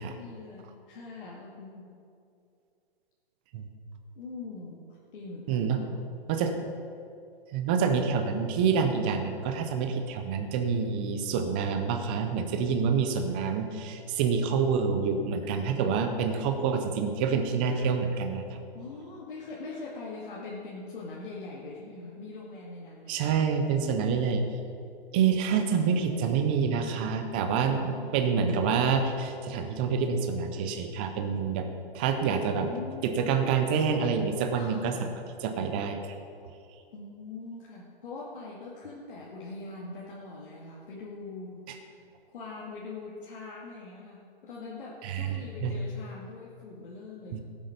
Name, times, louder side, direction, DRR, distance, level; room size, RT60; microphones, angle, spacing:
voice 1, 0.0-2.0 4.2-6.1 6.6-6.7 17.7-17.9 18.7-23.5 27.5-28.2 32.4-33.2 34.6-35.2 36.9-42.0 42.3-47.4, left 3 dB, 60° left, -5 dB, 2.3 m, -42 dB
voice 2, 5.5-5.8 6.3-6.5 7.5-18.6 23.1-24.4 25.1-31.7 31.9-32.7 33.0-34.9 35.4-36.1 45.0-45.8 47.3-47.4, right 6 dB, 10° right, 6 dB, 0.3 m, -27 dB
17.5 x 7.9 x 5.1 m, 2.5 s
hypercardioid pair, 150°, 30 cm